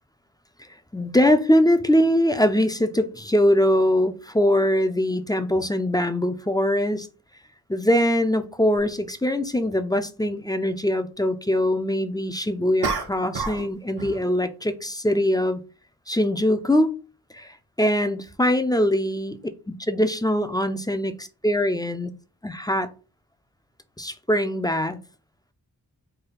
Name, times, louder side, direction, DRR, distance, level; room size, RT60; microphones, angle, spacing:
voice 1, 0.9-7.1 7.7-15.6 16.1-17.0 17.3-19.4 19.8-22.1 22.4-22.9 24.0-25.0, left 1 dB, 10° left, 0.5 m, -22 dB
sound 1, 8.8-8.9 12.8-13.7 14.0-14.3, right 4 dB, 75° right, 0.9 m, -29 dB
4.7 x 2.2 x 4.7 m
wide cardioid pair, 65°, 38 cm